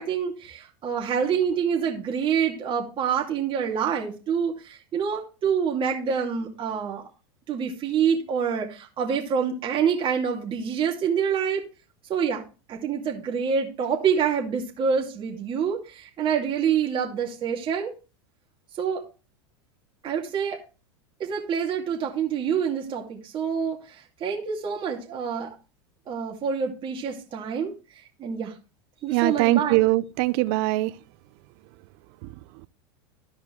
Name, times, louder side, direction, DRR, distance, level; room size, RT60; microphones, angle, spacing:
voice 1, 0.0-7.0 7.5-11.6 12.1-12.4 12.7-17.9 18.8-19.0 20.0-20.6 21.2-25.5 26.1-27.7 28.2-28.5 29.0-29.8, right 7 dB, 40° right, 2.4 m, -26 dB
voice 2, 29.1-30.9 32.2-32.3, right 19 dB, 60° right, 0.5 m, -22 dB
13.5 x 5.0 x 3.1 m
hypercardioid pair, 105°, 14 cm